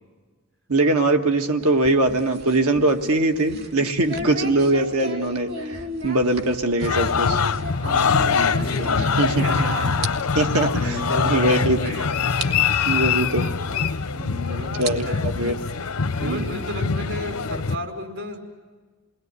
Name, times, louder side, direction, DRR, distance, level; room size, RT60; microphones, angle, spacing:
voice 1, 0.7-7.4 9.2-9.5 10.3-11.0 11.2-11.8 12.8-13.5 14.8-15.5 16.2-16.5, right 2 dB, 80° right, 5 dB, 1.6 m, -21 dB
sound 1, 1.6-9.6 9.8-10.1 10.4-10.5 11.3-11.4 11.9-12.0 12.4-12.5 13.9-14.0 14.6-16.0, equal, 45° right, 2.1 m, -35 dB
sound 2, 6.8-17.8, left 5 dB, 80° left, 0.8 m, -23 dB
voice 2, 7.5-10.1 10.7-12.1 14.1-15.2 16.2-18.4, equal, 65° right, 3 dB, 5.7 m, -32 dB
29.0 x 21.0 x 9.6 m, 1.4 s
head